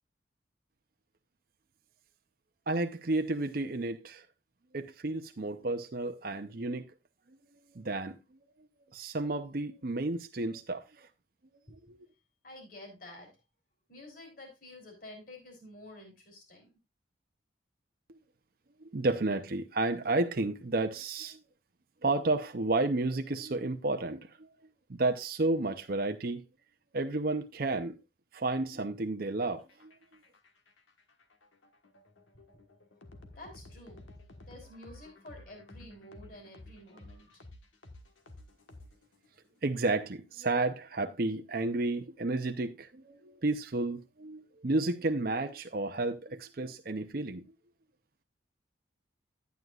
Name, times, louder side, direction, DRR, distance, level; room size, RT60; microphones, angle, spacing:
voice 1, 2.7-4.3 4.7-6.9 7.3-7.4 7.7-8.4 8.9-11.1 11.9-12.0 18.8-21.4 22.0-24.5 24.9-26.4 26.9-28.0 28.3-29.9 39.6-47.4, right 2 dB, 50° right, 0.7 m, -32 dB
voice 2, 12.4-13.3 13.9-16.7 33.3-34.0 34.5-37.4, left 1 dB, 45° left, 3.4 m, -50 dB
sound 1, 29.6-39.4, left 1 dB, 80° left, 1.4 m, -53 dB
11.5 x 9.3 x 2.4 m
head